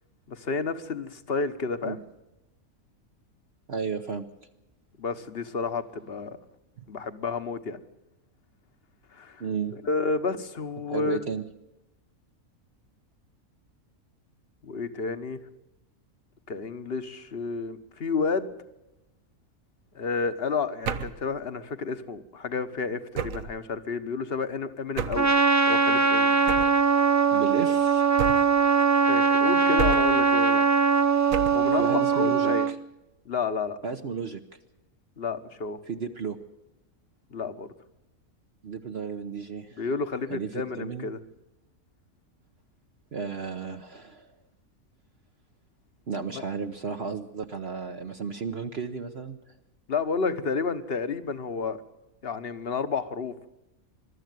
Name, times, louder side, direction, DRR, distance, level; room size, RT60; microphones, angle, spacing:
voice 1, 0.3-2.0 5.0-6.4 6.9-7.8 9.1-9.4 9.8-11.3 14.6-15.4 16.5-18.5 19.9-25.3 25.7-26.3 28.9-30.6 31.5-32.7 33.2-33.8 35.2-35.8 37.3-37.7 39.8-41.2 46.3-46.4 49.9-51.8 52.2-53.5, left 4 dB, 45° left, 11 dB, 1.4 m, -31 dB
voice 2, 3.7-4.2 6.8-6.9 9.4-9.7 10.8-11.4 27.3-28.0 31.8-32.8 33.8-34.4 35.9-36.4 38.6-39.9 40.3-41.1 43.1-44.3 46.1-49.5, right 5 dB, 50° right, 5 dB, 1.1 m, -33 dB
sound 1, 20.8-21.3 23.1-23.6 25.0-25.3 26.5-26.8 28.2-28.6 29.8-30.3 31.3-31.7, right 6 dB, 70° right, 1.3 m, -31 dB
Trumpet, 25.2-32.7, right 5 dB, 25° right, 0.3 m, -21 dB
22.5 x 13.0 x 9.3 m, 0.96 s
omnidirectional pair, 1.5 m